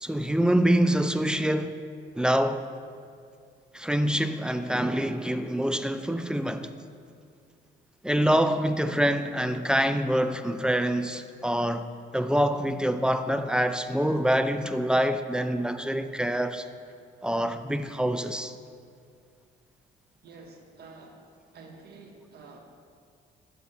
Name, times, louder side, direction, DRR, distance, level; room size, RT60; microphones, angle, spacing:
voice 1, 0.0-1.7 2.2-2.6 3.7-6.7 8.0-11.9 12.1-16.7 17.2-18.5, equal, 5° right, 0.3 m, -25 dB
voice 2, 20.2-21.3 21.5-22.6, right 3 dB, 55° right, 0.9 m, -48 dB
5.7 x 5.1 x 6.7 m
cardioid pair, 90°, 20 cm